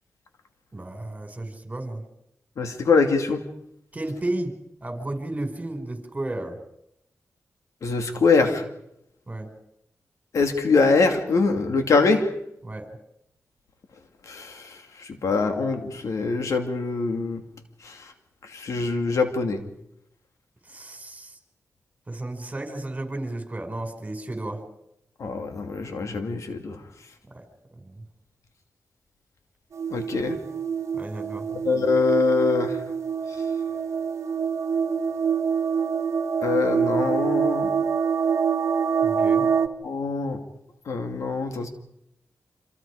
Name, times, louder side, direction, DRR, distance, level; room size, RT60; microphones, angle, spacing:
voice 1, 0.7-2.0 3.9-6.6 9.3-9.5 12.6-12.9 20.6-21.4 22.1-24.6 27.3-27.5 27.8-28.0 30.9-31.5 39.0-39.5, right 2 dB, 25° right, 5 dB, 5.8 m, -33 dB
voice 2, 2.6-3.4 7.8-8.6 10.3-12.3 14.3-17.4 17.8-18.1 18.5-19.6 25.2-26.8 29.9-30.4 31.6-32.8 36.4-37.7 39.8-40.4 40.9-41.7, left 4 dB, 80° left, 5 dB, 2.5 m, -23 dB
sound 1, 29.7-39.7, right 6 dB, 70° right, 1.3 m, -25 dB
27.0 x 26.5 x 5.1 m, 0.80 s
cardioid pair, 65°, 5 cm